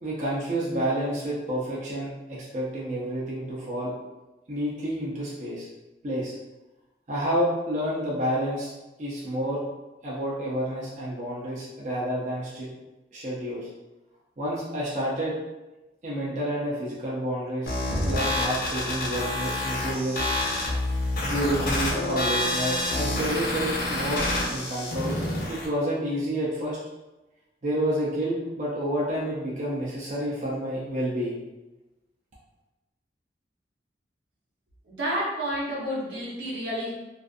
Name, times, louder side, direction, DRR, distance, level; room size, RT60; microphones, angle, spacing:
voice 1, 0.0-3.9 4.5-5.7 6.0-6.3 7.1-8.7 9.0-9.6 10.0-12.7 13.1-13.7 14.4-15.3 16.0-17.7 18.0-20.3 21.2-25.1 25.5-26.8 27.6-31.4, equal, 40° right, -6 dB, 0.5 m, -29 dB
sound 1, 17.7-25.7, left 1 dB, 50° left, 0.6 m, -28 dB
voice 2, 34.9-36.9, equal, 90° right, -6 dB, 0.9 m, -30 dB
2.4 x 2.4 x 2.5 m, 1.0 s
head